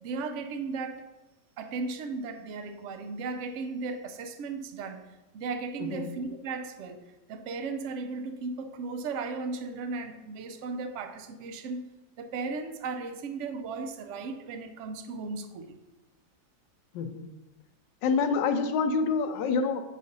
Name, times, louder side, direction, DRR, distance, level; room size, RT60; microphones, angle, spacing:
voice 1, 0.0-1.1 1.6-7.0 7.3-11.8 12.2-15.8, right 4 dB, 80° right, 7 dB, 0.6 m, -36 dB
voice 2, 5.8-6.1 16.9-17.3 18.0-19.8, left 5 dB, 90° left, 8 dB, 1.3 m, -27 dB
5.1 x 4.2 x 5.3 m, 1.1 s
omnidirectional pair, 1.9 m